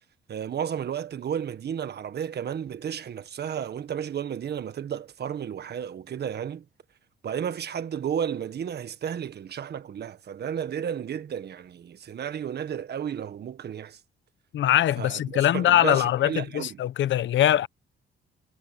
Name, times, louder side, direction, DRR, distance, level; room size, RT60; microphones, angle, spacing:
voice 1, 0.3-6.6 7.2-14.0 15.0-16.8, right 8 dB, 55° right, 1.6 m, -33 dB
voice 2, 14.5-17.7, left 12 dB, 70° left, 1.0 m, -22 dB
cardioid pair, 90°, 20 cm